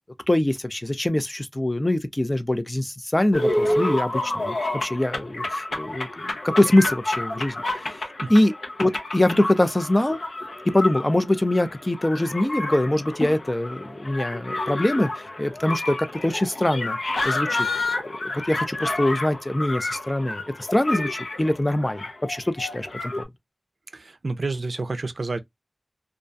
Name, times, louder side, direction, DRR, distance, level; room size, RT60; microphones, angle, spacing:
voice 1, 0.3-8.5 8.8-10.2 10.7-17.0 17.2-17.7 18.0-20.4 20.7-23.2, left 1 dB, 25° left, 0.4 m, -23 dB
sound 1, 3.3-23.2, left 2 dB, 80° left, 0.6 m, -29 dB
voice 2, 23.9-25.4, right 3 dB, 70° right, 0.4 m, -29 dB
2.4 x 2.2 x 2.4 m
wide cardioid pair, 45°, 0 cm